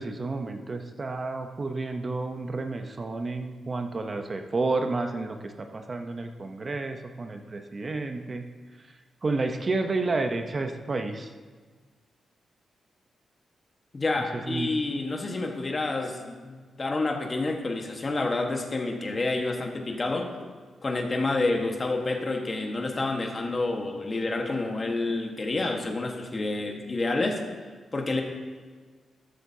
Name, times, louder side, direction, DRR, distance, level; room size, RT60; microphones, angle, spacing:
voice 1, 0.0-8.4 9.2-11.3 14.3-14.7, right 3 dB, 30° right, 6 dB, 0.7 m, -30 dB
voice 2, 13.9-20.3 20.8-27.4 27.9-28.2, left 2 dB, 30° left, 3 dB, 1.3 m, -28 dB
13.0 x 12.5 x 2.8 m, 1.5 s
wide cardioid pair, 125°, 0 cm